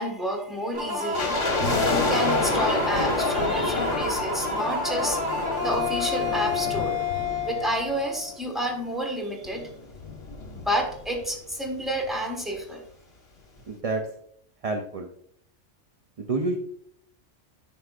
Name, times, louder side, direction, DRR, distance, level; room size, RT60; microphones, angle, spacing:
voice 1, 0.0-1.4 1.8-5.2 5.6-7.0 7.4-9.7 10.5-12.8, equal, ahead, 1 dB, 1.3 m, -29 dB
sound 1, 0.7-8.3, left 3 dB, 70° right, 1.8 m, -29 dB
sound 2, 1.1-8.4 8.7-8.8 9.4-11.3 11.5-11.6 11.8-12.1 12.6-12.7, left 3 dB, 60° left, 1.5 m, -29 dB
voice 2, 13.7-14.0 14.6-15.1 16.2-16.6, right 3 dB, 45° right, 4 dB, 0.5 m, -28 dB
9.7 x 6.0 x 2.4 m, 0.68 s
omnidirectional pair, 1.3 m